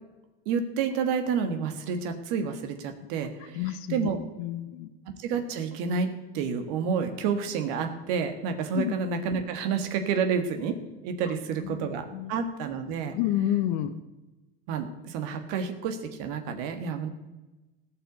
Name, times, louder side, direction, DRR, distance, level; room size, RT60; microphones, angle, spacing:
voice 1, 0.4-4.2 5.2-6.1 6.3-10.7 11.0-13.1 14.7-17.1, right 6 dB, 70° right, 7 dB, 1.6 m, -29 dB
voice 2, 3.5-4.9 8.7-8.9 11.6-12.3 13.1-13.9, left 12 dB, 70° left, 11 dB, 0.9 m, -30 dB
16.5 x 6.0 x 8.0 m, 1.1 s
supercardioid pair, 115°, 29 cm